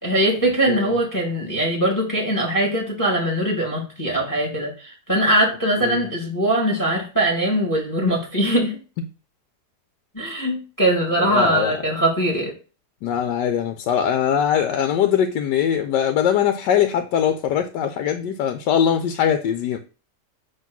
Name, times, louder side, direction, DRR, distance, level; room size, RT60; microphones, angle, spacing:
voice 1, 0.0-8.8 10.1-12.5, right 1 dB, 10° left, 1.6 m, -21 dB
voice 2, 11.3-11.7 13.0-19.8, left 9 dB, 80° left, 1.2 m, -21 dB
7.5 x 2.9 x 6.1 m
omnidirectional pair, 1.9 m